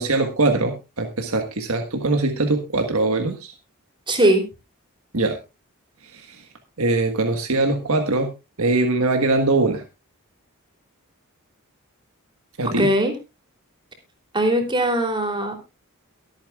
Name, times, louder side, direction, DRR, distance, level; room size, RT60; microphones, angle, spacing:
voice 1, 0.0-3.5 5.1-5.4 6.1-6.4 6.8-8.3 8.6-9.8 12.6-12.9, right 2 dB, 70° right, 5 dB, 1.5 m, -22 dB
voice 2, 4.1-4.4 12.6-13.1 14.3-15.6, right 1 dB, 20° right, 4 dB, 3.2 m, -20 dB
23.0 x 8.8 x 2.4 m, 0.26 s
head